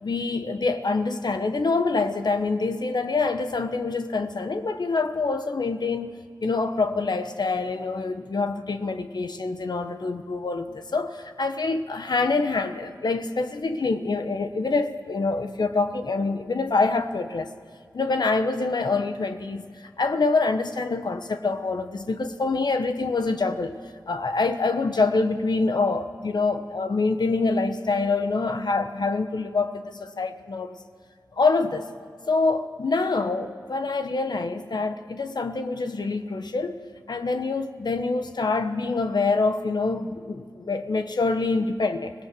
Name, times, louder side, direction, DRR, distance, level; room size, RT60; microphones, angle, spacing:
voice 1, 0.0-6.1 6.4-17.5 17.9-23.8 24.1-30.8 31.4-31.8 32.3-36.8 37.1-42.1, left 3 dB, 75° left, 7 dB, 1.2 m, -25 dB
24.5 x 18.0 x 7.6 m, 2.1 s
cardioid pair, 50°, 7 cm